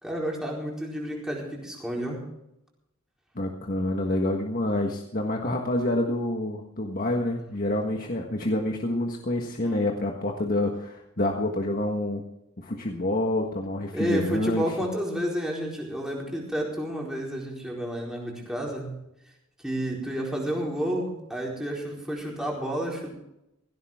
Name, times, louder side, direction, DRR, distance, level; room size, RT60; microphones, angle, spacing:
voice 1, 0.0-2.2 9.6-9.8 13.9-19.0 19.6-23.1, equal, 5° right, -3 dB, 4.4 m, -30 dB
voice 2, 3.3-12.2 12.6-14.8, left 1 dB, 40° left, 1 dB, 1.5 m, -27 dB
17.5 x 16.5 x 3.7 m, 0.86 s
head